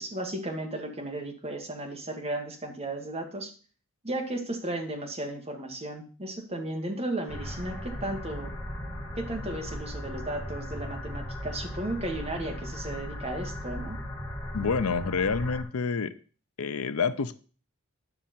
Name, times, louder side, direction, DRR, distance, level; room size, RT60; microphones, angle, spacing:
voice 1, 0.0-3.5 4.0-8.5 9.2-14.0, right 1 dB, 30° right, 2 dB, 1.7 m, -34 dB
sound 1, 7.3-15.6, left 1 dB, 20° left, 2.2 m, -37 dB
voice 2, 14.5-16.1 16.6-17.4, left 5 dB, 80° left, 13 dB, 0.6 m, -28 dB
9.9 x 6.2 x 4.3 m, 0.38 s
head